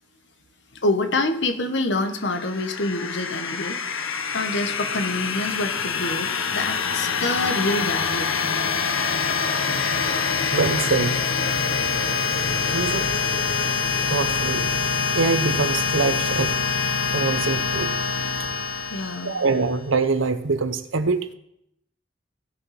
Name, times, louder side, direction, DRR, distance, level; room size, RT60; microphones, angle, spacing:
voice 1, 0.8-8.3 18.9-19.3, left 2 dB, 65° left, 8 dB, 1.2 m, -27 dB
sound 1, 2.1-19.7, left 5 dB, 90° left, 1.2 m, -25 dB
voice 2, 10.5-11.2 12.2-12.3 12.7-13.1 14.1-14.7 15.1-16.6 17.1-17.9 19.2-21.3, right 4 dB, 80° right, 11 dB, 0.8 m, -24 dB
16.5 x 7.1 x 4.3 m, 0.78 s
head